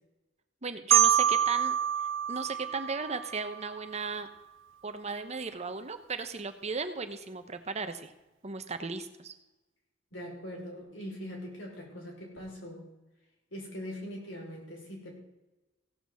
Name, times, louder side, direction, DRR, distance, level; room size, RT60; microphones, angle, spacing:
voice 1, 0.6-1.7 2.3-4.3 4.8-8.1 8.4-9.3, right 4 dB, 35° right, 9 dB, 0.9 m, -36 dB
Marimba xylophone, 0.9-3.7, right 9 dB, 75° right, 0.5 m, -26 dB
voice 2, 10.1-12.9 13.5-15.2, equal, 75° left, -2 dB, 5.2 m, -42 dB
16.0 x 6.0 x 7.6 m, 1.0 s
head